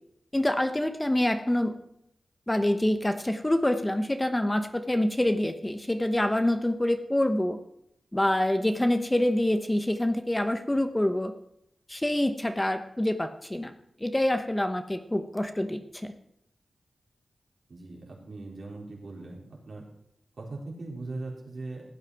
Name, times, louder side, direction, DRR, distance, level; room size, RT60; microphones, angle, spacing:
voice 1, 0.3-1.7 2.5-7.6 8.1-11.3 11.9-13.7 14.0-16.1, left 1 dB, 15° left, 8 dB, 0.9 m, -26 dB
voice 2, 17.7-19.4 19.7-19.9 20.4-21.8, right 2 dB, 70° right, -3 dB, 4.0 m, -39 dB
15.5 x 9.2 x 4.7 m, 0.77 s
wide cardioid pair, 70°, 0 cm